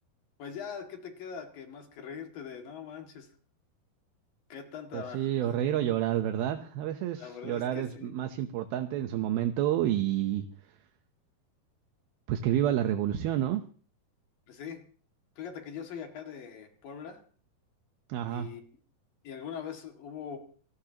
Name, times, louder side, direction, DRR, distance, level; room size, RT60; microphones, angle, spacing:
voice 1, 0.4-3.3 4.5-5.6 7.2-8.1 14.5-14.9 15.4-17.2 18.3-18.6 19.2-20.4, left 7 dB, 65° left, 3 dB, 3.8 m, -42 dB
voice 2, 4.9-10.5 12.3-13.6 18.1-18.5, right 11 dB, 75° right, 7 dB, 2.8 m, -29 dB
25.5 x 18.5 x 2.9 m, 0.42 s
omnidirectional pair, 4.5 m